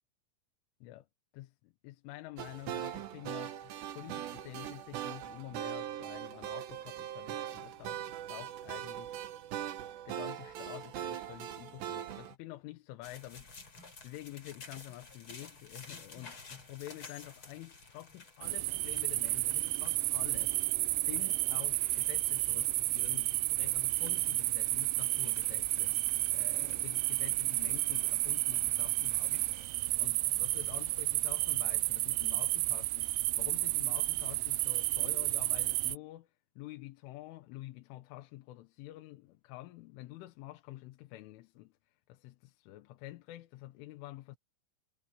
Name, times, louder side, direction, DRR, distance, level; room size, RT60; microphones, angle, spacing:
voice 1, 1.3-9.2 10.1-20.6 20.9-26.0 26.3-29.5 30.0-44.4, left 16 dB, 75° left, 3.5 m, -48 dB
sound 1, 2.4-12.3, right 11 dB, 65° right, 3.4 m, -41 dB
sound 2, 13.0-29.7, left 3 dB, 30° left, 4.1 m, -54 dB
sound 3, 18.4-36.0, right 21 dB, 85° right, 3.4 m, -31 dB
omnidirectional pair, 5.9 m